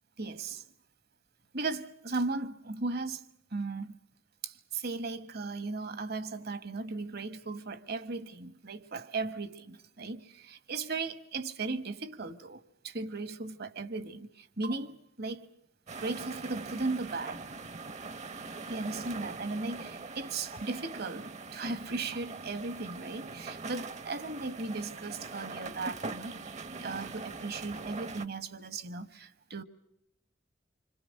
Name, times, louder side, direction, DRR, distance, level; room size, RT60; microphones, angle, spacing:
voice 1, 0.2-0.6 1.5-3.9 4.4-15.5 16.0-17.4 18.7-26.4 26.8-29.6, right 3 dB, 55° right, 1.3 m, -37 dB
sound 1, 15.9-28.3, right 3 dB, 40° right, 0.9 m, -42 dB
26.5 x 26.0 x 6.4 m
head